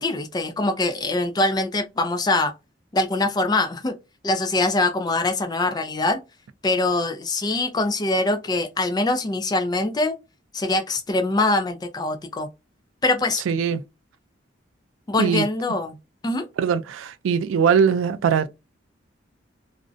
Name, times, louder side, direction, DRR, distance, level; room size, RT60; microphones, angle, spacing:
voice 1, 0.0-2.5 2.9-3.9 4.2-6.2 6.6-10.1 10.5-12.5 13.0-13.4 15.1-16.0 16.2-16.5, left 2 dB, 20° left, 0.3 m, -23 dB
voice 2, 13.5-13.8 15.2-15.5 16.6-18.5, right 7 dB, 90° right, 0.3 m, -21 dB
2.5 x 2.1 x 2.4 m
head